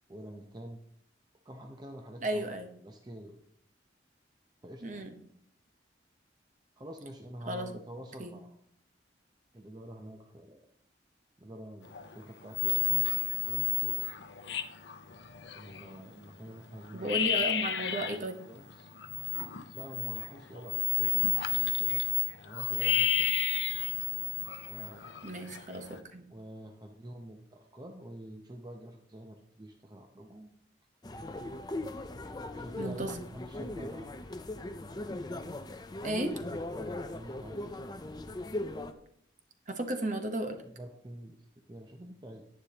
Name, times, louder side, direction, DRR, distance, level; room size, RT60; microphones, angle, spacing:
voice 1, 0.1-0.8 1.4-2.6 2.8-3.4 4.6-5.1 6.8-8.5 9.5-10.6 11.4-14.1 15.5-17.2 18.4-18.9 19.7-22.2 22.4-23.3 24.6-25.3 26.3-30.5 32.6-34.2 36.8-37.6 40.6-42.4, right 1 dB, 20° right, 3 dB, 0.7 m, -47 dB
voice 2, 2.2-2.7 4.8-5.2 7.5-7.7 8.2-8.3 16.9-18.4 25.2-26.2 32.7-33.2 36.0-36.4 39.7-40.6, right 1 dB, 40° right, 6 dB, 1.0 m, -34 dB
sound 1, 11.8-12.2 12.5-16.0 16.5-16.6 16.8-18.2 18.6-26.0, left 10 dB, 70° left, 0.7 m, -31 dB
sound 2, 31.0-38.9, left 2 dB, 20° left, 0.5 m, -39 dB
10.0 x 9.5 x 2.9 m, 0.69 s
head